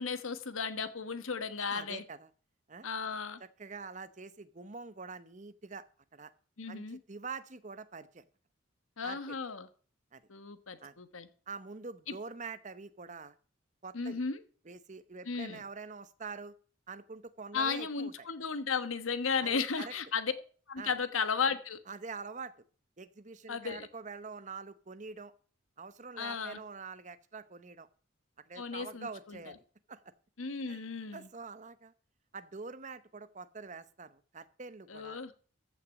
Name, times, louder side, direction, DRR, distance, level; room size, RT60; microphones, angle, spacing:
voice 1, 0.0-2.0 2.8-3.4 6.6-7.0 9.0-9.7 10.3-11.3 12.1-12.2 13.9-14.4 15.3-15.6 17.5-20.3 20.7-21.8 23.5-23.9 26.2-26.6 28.5-29.4 30.4-31.3 34.9-35.3, left 5 dB, 90° left, 11 dB, 1.2 m, -35 dB
voice 2, 1.6-2.3 2.7-2.9 3.6-5.9 6.1-6.3 6.7-8.2 9.0-9.3 10.1-10.2 10.8-11.0 11.5-13.4 13.8-14.2 14.6-16.5 16.9-18.1 19.4-19.9 20.8-20.9 21.9-22.5 23.0-25.3 25.8-27.9 28.5-30.1 30.7-30.8 31.1-31.9 32.3-35.2, right 4 dB, 35° right, 13 dB, 0.8 m, -45 dB
14.5 x 5.9 x 7.3 m, 0.42 s
head